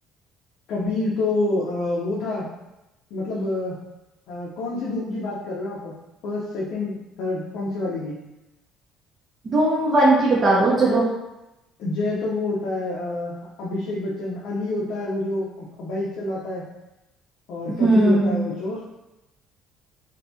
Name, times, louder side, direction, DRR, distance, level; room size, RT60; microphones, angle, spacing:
voice 1, 0.7-2.5 3.1-3.7 4.3-5.9 6.2-8.2 11.8-16.6 17.5-18.8, left 2 dB, 65° left, -6 dB, 0.5 m, -27 dB
voice 2, 9.4-11.1 17.8-18.4, right 2 dB, 30° right, -7 dB, 0.6 m, -18 dB
2.7 x 2.2 x 2.6 m, 0.97 s
cardioid pair, 150°, 0 cm